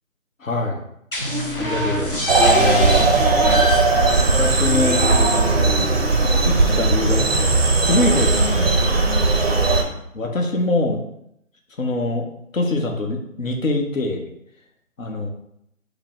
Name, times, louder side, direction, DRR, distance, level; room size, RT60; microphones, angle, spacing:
voice 1, 0.4-0.8 1.6-3.1 4.2-5.0 6.5-7.6 7.8-9.1 10.1-11.0 11.8-12.2 12.5-14.2 15.0-15.3, left 2 dB, 70° left, 2 dB, 0.8 m, -24 dB
sound 1, 1.1-6.6, equal, 45° left, 0.4 m, -28 dB
sound 2, 1.2-2.1 2.4-7.0, left 2 dB, ahead, 1.3 m, -30 dB
sound 3, 2.3-9.8, right 3 dB, 50° right, 0.4 m, -17 dB
4.5 x 2.1 x 3.1 m, 0.77 s
hypercardioid pair, 170°, 41 cm